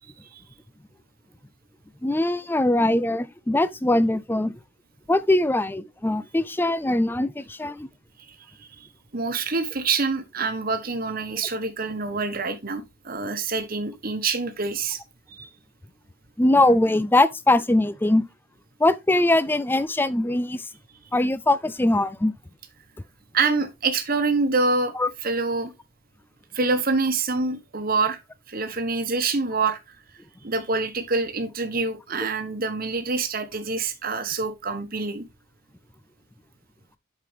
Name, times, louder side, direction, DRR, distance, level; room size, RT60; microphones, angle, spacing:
voice 1, 2.0-4.5 5.1-7.9 16.4-18.2 18.8-20.7 21.1-22.3 25.0-25.1, left 1 dB, 10° left, 0.3 m, -21 dB
voice 2, 8.3-8.9 9.1-15.0 15.3-15.5 23.3-24.9 25.2-25.7 26.5-28.2 28.5-29.8 30.4-35.2, right 4 dB, 40° right, 1.2 m, -26 dB
7.9 x 5.8 x 3.4 m
head